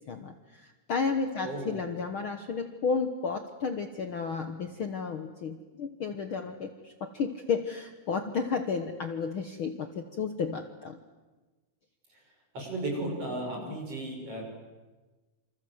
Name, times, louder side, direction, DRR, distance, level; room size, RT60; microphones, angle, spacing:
voice 1, 0.1-11.0 13.6-13.7, left 5 dB, 55° left, 7 dB, 1.7 m, -32 dB
voice 2, 1.4-1.8 12.1-12.2 12.5-14.4, right 2 dB, 50° right, 1 dB, 7.8 m, -35 dB
28.0 x 26.5 x 8.1 m, 1.2 s
omnidirectional pair, 3.6 m